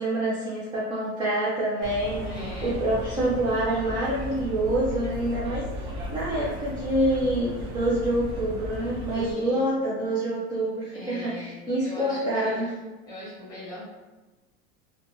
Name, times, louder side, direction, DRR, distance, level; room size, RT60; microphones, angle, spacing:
voice 1, 0.0-2.2 2.6-5.6 6.1-12.7, right 1 dB, 15° right, -7 dB, 0.3 m, -26 dB
sound 1, 1.8-9.3, equal, 50° right, 0.8 m, -35 dB
voice 2, 2.2-2.9 9.1-9.8 10.9-12.6 13.1-13.9, equal, 10° left, -7 dB, 1.1 m, -40 dB
2.8 x 2.2 x 2.6 m, 1.2 s
supercardioid pair, 145°, 35 cm